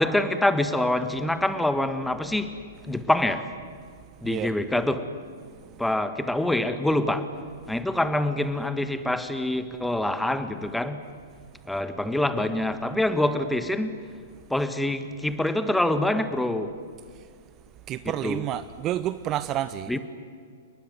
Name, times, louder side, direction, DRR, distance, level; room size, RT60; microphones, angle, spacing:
voice 1, 0.0-2.6 2.9-3.5 4.2-5.1 5.8-7.3 7.7-11.0 11.7-14.0 14.5-16.8 18.0-18.4 19.9-20.0, left 1 dB, 5° left, 1.5 m, -25 dB
voice 2, 5.5-5.8 17.1-17.3 17.9-20.0, right 12 dB, 30° right, 0.7 m, -30 dB
29.5 x 20.0 x 9.6 m
figure-of-eight pair, 110°, 0 cm